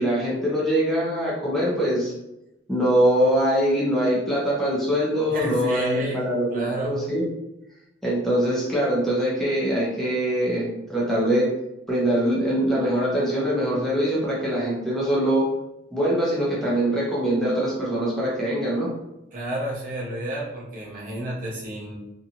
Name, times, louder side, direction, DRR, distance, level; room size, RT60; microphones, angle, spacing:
voice 1, 0.0-2.1 2.7-7.2 8.0-11.5 11.9-15.5 15.9-18.9, equal, ahead, -7 dB, 0.7 m, -23 dB
voice 2, 5.3-7.0 19.3-21.9, right 1 dB, 45° right, -4 dB, 0.8 m, -31 dB
2.7 x 2.5 x 2.8 m, 0.92 s
head